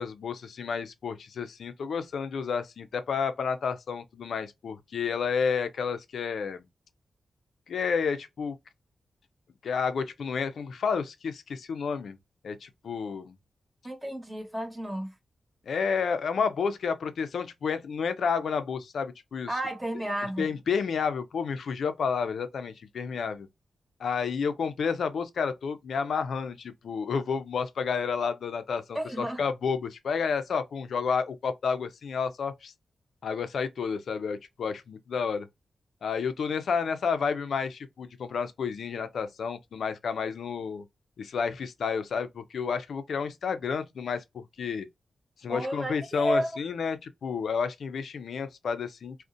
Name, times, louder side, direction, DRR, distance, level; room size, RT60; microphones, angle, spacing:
voice 1, 0.0-6.7 7.7-8.6 9.6-12.2 12.4-13.3 15.7-19.6 20.2-23.5 24.0-32.7 33.2-35.5 36.0-40.8 41.2-44.9 45.4-49.2, left 6 dB, 75° left, 0.3 m, -30 dB
voice 2, 13.8-15.1 19.5-20.5 28.9-29.4 45.5-46.5, equal, 20° right, 1.0 m, -31 dB
2.4 x 2.0 x 2.5 m
supercardioid pair, 40°, 0 cm